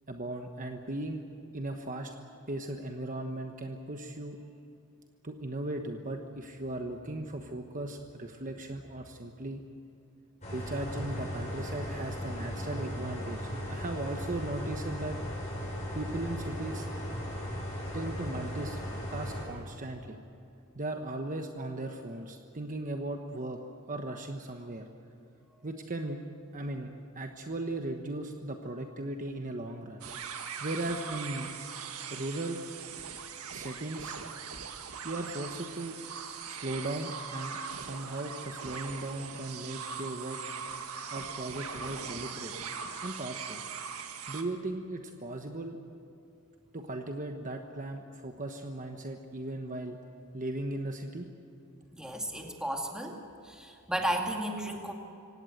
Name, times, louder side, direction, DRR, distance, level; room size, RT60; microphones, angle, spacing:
voice 1, 0.1-1.3 1.5-2.2 2.5-4.4 5.2-9.6 10.5-15.2 15.9-16.9 17.9-18.8 19.1-20.2 20.7-23.6 23.9-24.9 25.6-30.0 30.6-31.5 32.1-32.7 33.5-34.2 35.0-36.0 36.5-40.4 41.1-42.6 43.0-43.6 44.3-45.8 46.7-50.0 50.3-51.3, right 2 dB, 35° right, 4 dB, 1.2 m, -37 dB
sound 1, 10.4-19.4, equal, 30° left, 7.9 m, -37 dB
sound 2, 30.0-44.4, right 6 dB, 80° right, 1.8 m, -40 dB
voice 2, 51.9-53.2 53.4-54.9, right 1 dB, 5° right, 1 dB, 2.4 m, -33 dB
25.5 x 17.5 x 7.9 m, 2.6 s
head